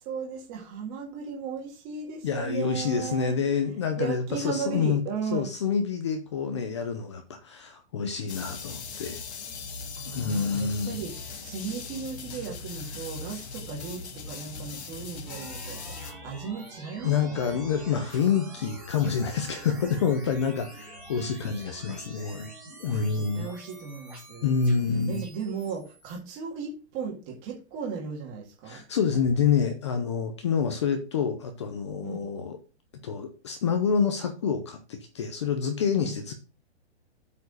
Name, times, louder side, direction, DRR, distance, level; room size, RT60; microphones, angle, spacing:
voice 1, 0.0-3.3 4.0-5.5 9.9-17.6 22.9-24.5 25.1-28.8 32.0-32.2 35.9-36.1, right 6 dB, 20° right, -1 dB, 1.9 m, -36 dB
voice 2, 2.2-5.0 5.3-9.2 10.1-11.0 17.0-22.5 22.8-23.5 24.4-25.2 28.6-32.6 33.0-36.3, left 6 dB, 25° left, 7 dB, 0.7 m, -27 dB
sound 1, 8.3-16.1, left 4 dB, 75° left, 2.1 m, -39 dB
sound 2, 15.3-26.2, right 1 dB, 5° right, 2.3 m, -46 dB
8.1 x 4.9 x 4.9 m, 0.33 s
hypercardioid pair, 175°, 33 cm